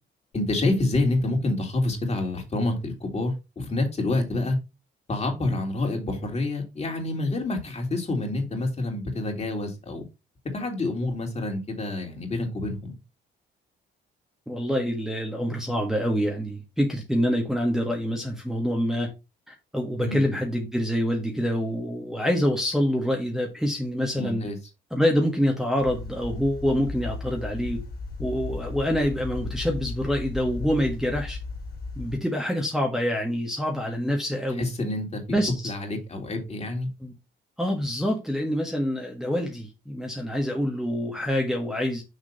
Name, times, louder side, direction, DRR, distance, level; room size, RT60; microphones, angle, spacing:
voice 1, 0.3-4.6 5.1-10.0 10.5-12.9 20.0-20.2 24.2-24.6 34.6-35.4 35.6-36.9, left 2 dB, 35° left, 3.1 m, -27 dB
voice 2, 14.5-19.1 19.5-24.5 24.9-27.8 28.2-31.4 32.0-34.7 35.3-35.7 37.0-37.1 37.6-42.0, equal, ahead, 1.5 m, -26 dB
sound 1, 25.8-32.2, left 3 dB, 50° left, 2.9 m, -35 dB
6.5 x 3.6 x 5.7 m
cardioid pair, 90°, 20 cm